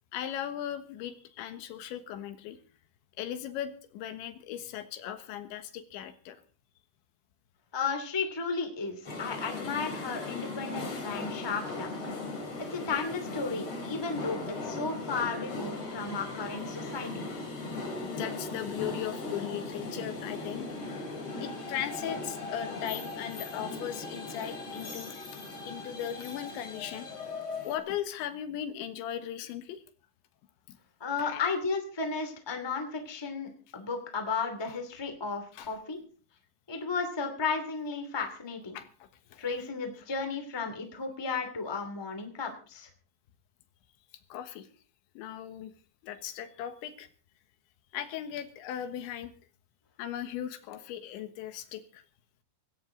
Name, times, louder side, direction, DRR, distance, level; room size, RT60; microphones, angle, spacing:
voice 1, 0.1-2.6 3.2-6.4 18.0-20.7 21.4-25.3 25.7-27.1 27.6-29.8 31.2-31.5 35.5-35.8 38.7-39.5 44.3-44.7 45.2-45.7 46.0-47.1 47.9-49.3 50.0-52.0, left 10 dB, 75° left, 10 dB, 3.6 m, -38 dB
voice 2, 7.7-12.0 12.6-17.1 31.0-36.0 36.7-38.8 39.4-42.9, left 4 dB, 10° left, 6 dB, 1.3 m, -34 dB
sound 1, 9.0-27.8, left 3 dB, 30° left, 3.7 m, -38 dB
18.0 x 17.0 x 3.9 m, 0.38 s
omnidirectional pair, 5.4 m